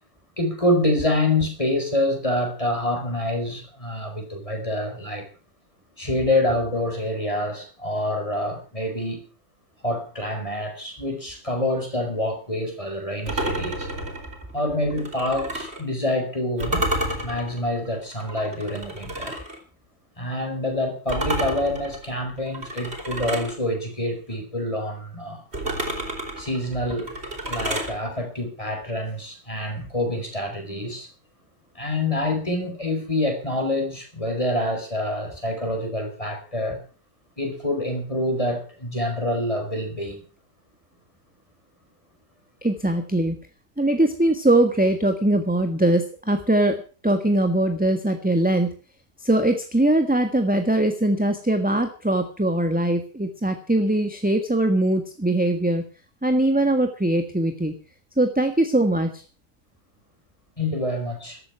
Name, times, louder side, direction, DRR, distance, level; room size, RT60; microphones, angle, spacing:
voice 1, 0.4-5.3 6.0-9.2 9.8-13.9 14.5-16.9 17.2-19.4 20.2-25.4 26.4-27.1 27.5-31.1 31.7-36.8 37.4-40.2 60.6-61.4, left 1 dB, 20° left, 4.9 m, -26 dB
sound 1, 13.3-15.8 16.6-19.6 21.1-23.6 25.5-27.9, right 1 dB, 40° right, 4.9 m, -30 dB
voice 2, 42.6-43.3 43.8-46.8 47.0-48.7 49.2-55.8 56.2-57.7 58.2-59.2, right 1 dB, 5° right, 1.5 m, -21 dB
14.5 x 13.0 x 5.9 m
omnidirectional pair, 1.7 m